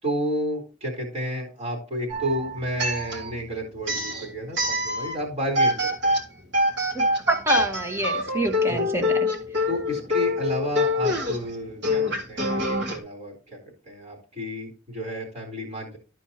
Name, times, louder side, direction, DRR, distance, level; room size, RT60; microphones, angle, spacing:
voice 1, 0.0-6.2 8.7-9.1 9.7-13.6 13.9-16.0, equal, 30° right, -1 dB, 3.8 m, -31 dB
sound 1, 2.1-3.4 3.8-5.2 5.6-13.0, left 1 dB, 60° right, 3.2 m, -25 dB
voice 2, 6.9-9.2 9.6-9.7, right 1 dB, 15° right, 4 dB, 1.5 m, -27 dB
13.5 x 4.6 x 4.3 m, 0.35 s
head